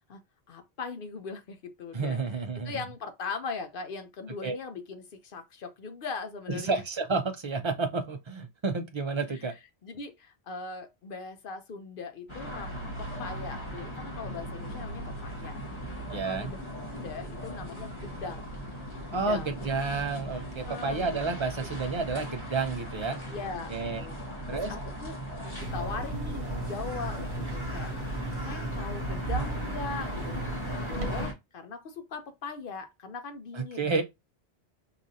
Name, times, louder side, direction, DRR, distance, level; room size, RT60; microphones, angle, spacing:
voice 1, 0.5-2.2 2.6-6.8 9.3-9.4 9.8-15.6 16.2-16.6 16.9-18.6 19.1-19.5 20.7-21.2 21.6-21.7 23.3-24.2 24.5-27.9 28.4-30.4 30.9-34.0, left 4 dB, 60° left, 0.8 m, -40 dB
voice 2, 1.9-2.7 4.4-4.6 6.5-9.5 16.1-16.5 19.1-23.2 23.7-24.1 24.5-24.7 33.5-34.0, right 4 dB, 35° right, 0.5 m, -30 dB
sound 1, 12.3-31.3, right 1 dB, 30° left, 1.2 m, -38 dB
sound 2, 25.6-31.3, right 1 dB, 85° right, 1.1 m, -35 dB
4.7 x 2.5 x 2.7 m
omnidirectional pair, 1.1 m